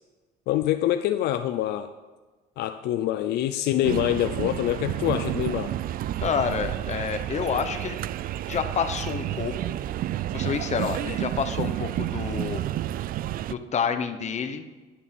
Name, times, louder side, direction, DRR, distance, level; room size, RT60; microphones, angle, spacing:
voice 1, 0.5-1.9 2.6-5.7, left 13 dB, 80° left, 9 dB, 0.6 m, -25 dB
sound 1, 3.8-13.5, right 13 dB, 60° right, 0.4 m, -30 dB
voice 2, 6.2-8.0 8.5-9.7 10.3-12.6 13.5-14.6, left 6 dB, 45° left, 8 dB, 1.1 m, -28 dB
12.5 x 6.8 x 5.4 m, 1.3 s
cardioid pair, 110°, 17 cm